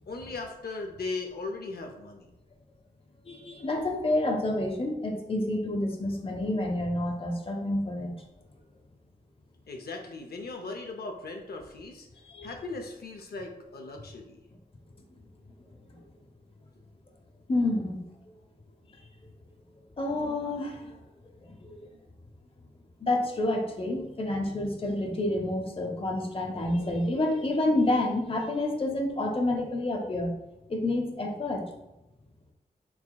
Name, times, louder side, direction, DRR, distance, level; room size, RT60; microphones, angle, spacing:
voice 1, 0.1-2.3 9.7-12.1 12.4-14.4 21.6-21.7, left 3 dB, 80° left, 2 dB, 0.5 m, -38 dB
voice 2, 3.3-8.1 12.3-12.5 15.9-16.0 17.5-18.0 20.0-21.0 21.4-21.9 23.0-30.3 30.7-31.7, left 1 dB, 35° left, 2 dB, 0.6 m, -29 dB
4.8 x 3.4 x 2.2 m, 0.91 s
wide cardioid pair, 105°, 16 cm